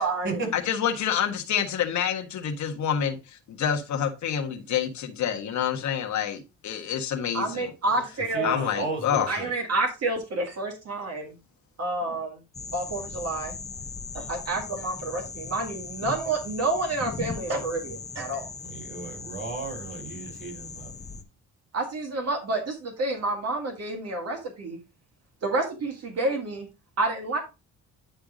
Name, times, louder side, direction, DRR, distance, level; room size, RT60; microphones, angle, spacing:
voice 1, 0.0-0.4 7.3-8.5 9.3-11.4 11.8-12.4 12.7-13.6 14.1-18.5 21.7-24.8 25.4-26.7 27.0-27.4, right 2 dB, 55° right, 2.2 m, -29 dB
voice 2, 0.5-3.2 3.5-7.7 8.4-9.3, left 8 dB, 70° left, 1.4 m, -27 dB
voice 3, 8.3-9.5 18.6-20.9, right 3 dB, 40° right, 5.5 m, -34 dB
sound 1, 12.5-21.2, left 4 dB, 20° left, 1.0 m, -39 dB
10.0 x 3.5 x 5.0 m
cardioid pair, 90°, 30 cm